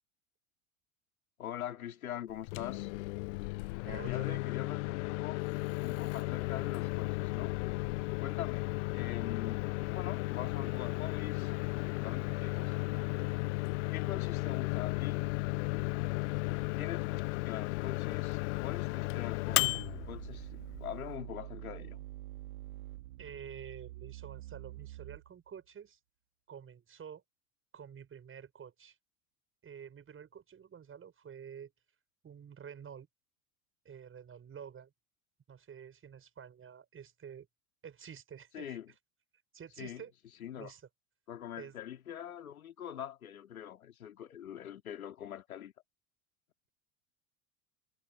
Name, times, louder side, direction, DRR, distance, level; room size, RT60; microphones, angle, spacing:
voice 1, 1.4-2.9 3.8-7.6 8.2-9.6 9.9-11.5 11.8-13.1 13.9-15.2 16.7-22.0 38.5-38.9 39.8-40.0 40.4-40.7 41.3-45.7, left 10 dB, 80° left, 2.9 m, -44 dB
Microwave oven, 2.3-21.1, left 24 dB, 60° left, 0.5 m, -34 dB
voice 2, 3.9-4.4 23.2-26.0 26.5-27.2 27.7-29.0 29.6-31.7 32.2-33.1 33.9-34.9 35.5-37.5 37.8-38.8 39.5-40.1 40.6-40.8 41.6-41.7, right 8 dB, 30° right, 6.9 m, -49 dB
sound 1, 19.5-25.5, right 16 dB, 70° right, 3.3 m, -46 dB
hypercardioid pair, 80°, 42 cm